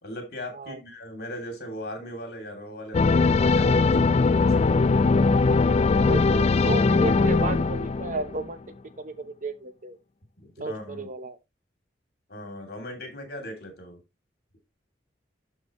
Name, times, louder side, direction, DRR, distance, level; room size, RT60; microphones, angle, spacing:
voice 1, 0.0-4.9 10.4-11.1 12.3-14.0, left 1 dB, 60° left, 2.9 m, -39 dB
sound 1, 2.9-8.5, left 4 dB, 35° left, 0.3 m, -20 dB
voice 2, 6.0-8.6 9.0-10.0 10.6-11.4, right 3 dB, 45° right, 0.8 m, -33 dB
11.5 x 4.4 x 3.1 m
head